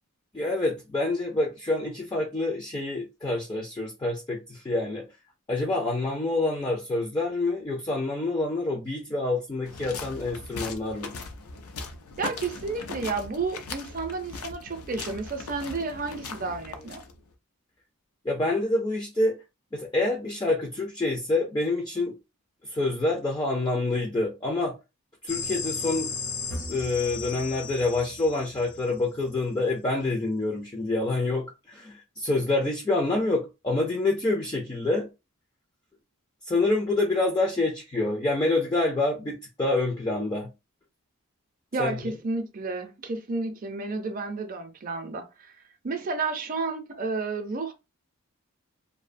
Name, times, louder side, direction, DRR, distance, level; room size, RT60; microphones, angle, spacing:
voice 1, 0.3-5.1 5.5-11.1 18.2-19.4 19.7-22.2 22.7-24.8 25.2-26.1 26.7-35.1 36.5-40.5 41.8-42.0, left 2 dB, 20° left, 0.3 m, -27 dB
sound 1, 9.6-17.3, left 4 dB, 90° left, 0.5 m, -39 dB
voice 2, 12.2-17.0 41.7-45.5 45.8-47.7, right 3 dB, 40° right, 0.5 m, -31 dB
sound 2, 25.3-29.0, left 4 dB, 55° left, 0.7 m, -35 dB
2.6 x 2.1 x 2.5 m
head